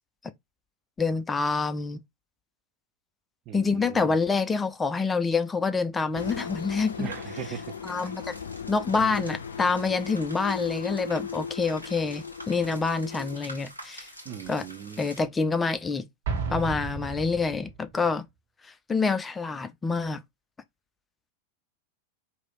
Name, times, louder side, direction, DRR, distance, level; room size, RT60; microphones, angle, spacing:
voice 1, 1.0-2.0 3.5-7.1 7.8-8.4 8.7-14.1 14.5-14.6 15.0-16.1 16.5-18.3 18.6-20.2, left 4 dB, 15° left, 0.6 m, -27 dB
voice 2, 3.5-4.2 7.0-8.1 14.2-15.1, right 10 dB, 35° right, 0.5 m, -39 dB
sound 1, 6.1-13.4, left 6 dB, 65° left, 0.5 m, -37 dB
sound 2, 6.2-15.2, equal, 90° right, 1.3 m, -47 dB
Explosion, 16.2-17.9, right 5 dB, 55° right, 1.4 m, -33 dB
4.8 x 2.8 x 3.7 m
figure-of-eight pair, 90°, 0 cm